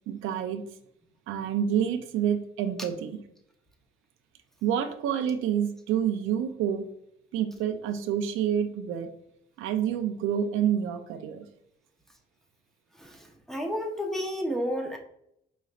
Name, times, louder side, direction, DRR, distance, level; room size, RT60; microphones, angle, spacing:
voice 1, 0.1-0.6 1.3-3.2 4.6-6.9 7.3-9.1 9.6-11.4, right 9 dB, 90° right, 8 dB, 0.5 m, -28 dB
voice 2, 12.9-15.0, equal, ahead, 1 dB, 0.8 m, -31 dB
4.9 x 3.1 x 2.4 m, 0.75 s
cardioid pair, 90°, 20 cm